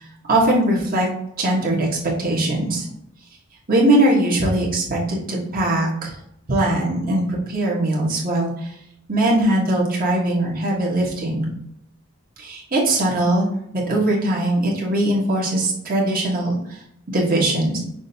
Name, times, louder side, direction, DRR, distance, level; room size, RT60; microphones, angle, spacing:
voice 1, 0.3-1.1 1.4-1.9 2.2-2.8 3.7-6.1 6.5-8.7 9.1-11.5 12.4-13.5 13.7-16.8 17.1-17.8, right 1 dB, 45° right, -4 dB, 1.3 m, -20 dB
6.1 x 2.6 x 2.8 m, 0.77 s
head